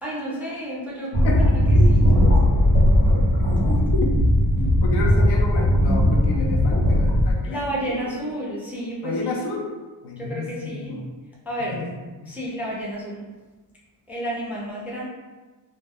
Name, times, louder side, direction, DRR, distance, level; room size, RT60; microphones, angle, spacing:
voice 1, 0.0-2.3 7.5-9.4 10.2-11.1 11.4-11.8 12.3-13.2 14.1-15.0, equal, 5° right, -5 dB, 0.3 m, -31 dB
sound 1, 1.1-7.3, equal, 85° left, 0.9 m, -18 dB
voice 2, 3.4-4.1 4.5-8.2 9.0-9.7 10.0-11.2 11.6-11.9 12.2-12.3, left 3 dB, 70° left, 0 dB, 0.6 m, -31 dB
2.1 x 2.1 x 3.3 m, 1.3 s
wide cardioid pair, 165°, 43 cm